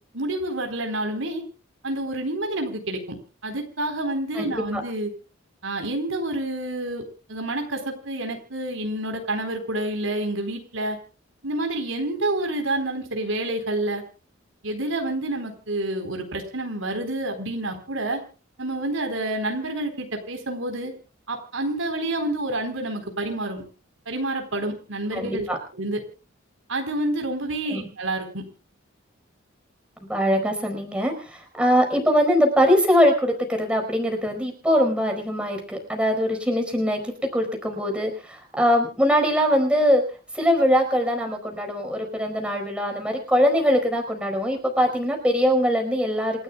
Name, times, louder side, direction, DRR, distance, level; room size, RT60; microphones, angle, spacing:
voice 1, 0.1-1.4 1.8-3.2 3.4-5.1 5.6-7.0 7.3-11.0 11.4-14.0 14.6-18.2 18.6-20.9 21.3-23.6 24.1-25.5 25.8-26.0 26.7-28.5, right 1 dB, 80° right, 4 dB, 4.0 m, -28 dB
voice 2, 4.3-4.8 25.1-25.6 27.7-27.9 30.1-40.0 40.3-46.4, equal, 5° right, 3 dB, 4.6 m, -22 dB
28.5 x 13.0 x 2.3 m, 0.38 s
head